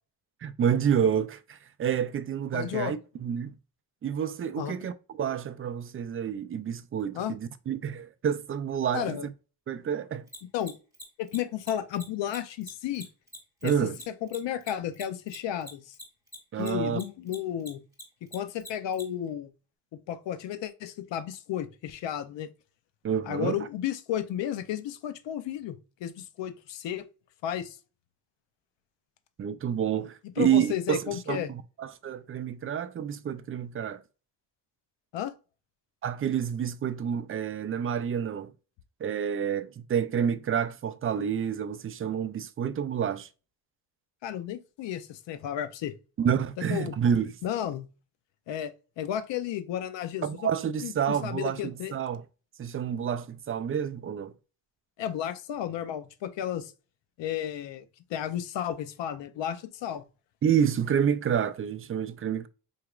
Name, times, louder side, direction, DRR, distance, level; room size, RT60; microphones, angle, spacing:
voice 1, 0.4-3.5 4.0-9.3 9.7-10.3 13.6-14.0 16.5-17.0 23.0-23.7 29.4-34.0 36.0-38.5 39.0-43.3 46.2-47.3 50.2-52.2 52.6-54.3 60.4-62.5, right 8 dB, 35° right, 0.4 m, -29 dB
voice 2, 2.5-2.9 4.6-4.7 7.1-7.4 8.9-9.3 10.5-10.8 11.2-13.1 13.6-13.9 14.2-15.9 16.6-17.8 18.2-19.5 19.9-22.5 23.3-27.1 27.4-27.8 30.4-31.5 35.1-35.3 44.2-45.9 46.7-47.0 47.4-47.9 48.5-48.7 49.0-50.5 50.8-51.9 55.0-56.7 57.2-60.0, left 10 dB, 85° left, 0.6 m, -33 dB
Mechanisms, 10.3-17.0 17.3-19.0, equal, 10° right, 1.9 m, -43 dB
4.6 x 2.9 x 2.4 m
cardioid pair, 95°, 42 cm